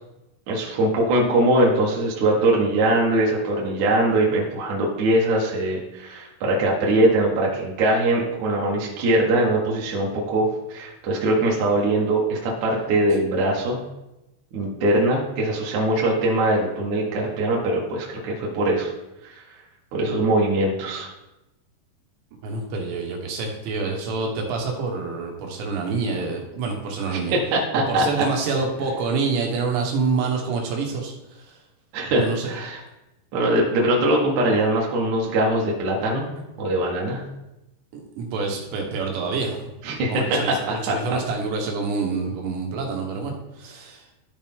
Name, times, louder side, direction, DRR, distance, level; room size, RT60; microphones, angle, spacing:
voice 1, 0.5-13.8 14.5-18.9 19.2-19.3 19.9-21.1 27.1-28.3 31.9-32.8 33.3-36.3 36.6-37.2 39.8-41.2, right 1 dB, 65° right, -3 dB, 1.8 m, -22 dB
voice 2, 22.4-27.3 27.7-31.6 32.2-32.5 37.9-43.3 43.6-44.0, right 4 dB, 90° right, 1 dB, 3.5 m, -27 dB
13.0 x 4.5 x 3.6 m, 0.94 s
omnidirectional pair, 4.9 m